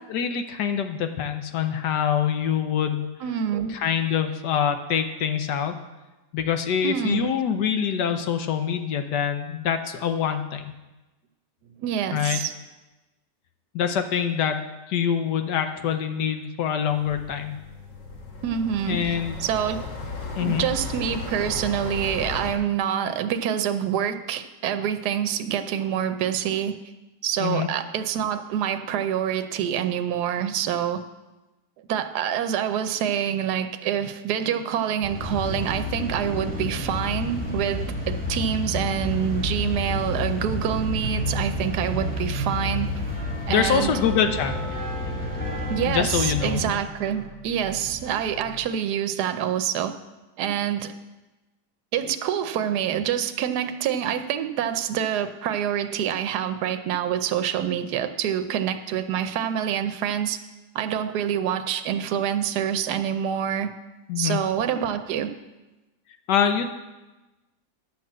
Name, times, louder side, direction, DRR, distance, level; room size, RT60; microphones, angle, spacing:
voice 1, 0.1-3.1 3.7-5.7 6.3-10.7 12.1-12.4 13.7-17.6 18.9-19.4 20.4-20.7 27.4-27.7 43.5-44.5 45.9-46.6 64.1-64.4 66.3-66.7, left 8 dB, 75° left, 7 dB, 1.4 m, -25 dB
voice 2, 3.2-3.8 6.8-7.3 11.8-12.5 18.4-19.9 20.4-26.8 27.2-31.0 31.9-42.9 43.5-43.9 45.7-49.9 50.4-50.9 51.9-60.4 60.7-63.7 64.2-65.3, right 9 dB, 70° right, 9 dB, 1.2 m, -26 dB
sound 1, 16.8-22.5, left 3 dB, 90° left, 2.2 m, -35 dB
sound 2, 35.0-46.7, left 1 dB, 5° left, 1.7 m, -30 dB
sound 3, 38.2-48.7, right 1 dB, 35° right, 1.2 m, -43 dB
10.5 x 5.9 x 7.5 m, 1.1 s
omnidirectional pair, 1.9 m